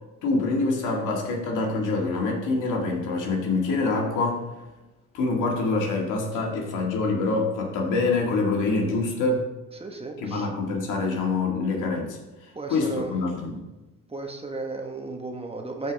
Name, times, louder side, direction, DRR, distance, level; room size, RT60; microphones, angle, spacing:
voice 1, 0.2-4.5 5.1-9.5 10.2-13.6, left 3 dB, 90° left, 0 dB, 2.0 m, -25 dB
voice 2, 9.7-10.5 12.5-13.4 14.1-15.9, right 3 dB, 20° right, 3 dB, 1.4 m, -35 dB
14.0 x 4.7 x 3.5 m, 1.1 s
cardioid pair, 90°, 30 cm